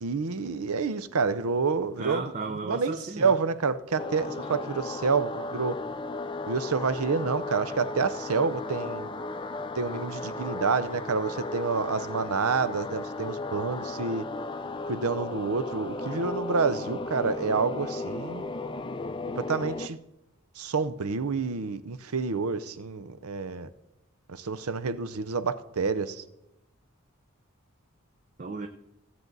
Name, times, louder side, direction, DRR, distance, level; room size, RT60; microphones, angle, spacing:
voice 1, 0.0-2.3 2.7-5.8 6.5-9.1 9.8-14.2 14.9-18.5 19.4-20.0 20.6-23.7 24.3-26.2, right 4 dB, 85° right, 0.7 m, -28 dB
voice 2, 2.0-3.4 4.4-4.6 28.4-28.7, right 3 dB, 35° right, 0.5 m, -35 dB
sound 1, 4.0-19.9, left 2 dB, 20° left, 0.4 m, -35 dB
16.0 x 7.6 x 4.0 m
head